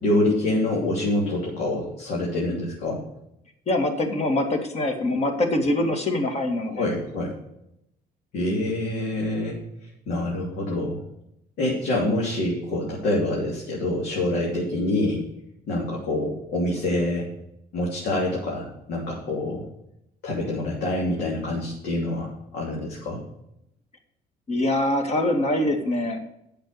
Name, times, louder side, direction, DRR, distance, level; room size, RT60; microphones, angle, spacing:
voice 1, 0.0-3.0 6.7-7.3 8.3-9.6 10.1-11.0 11.6-15.2 15.7-17.3 17.7-19.6 20.2-23.2, left 1 dB, 70° left, -4 dB, 3.1 m, -26 dB
voice 2, 3.7-6.9 24.5-26.2, left 1 dB, 40° left, 5 dB, 2.1 m, -24 dB
8.2 x 6.8 x 8.1 m, 0.80 s
cardioid pair, 110°, 17 cm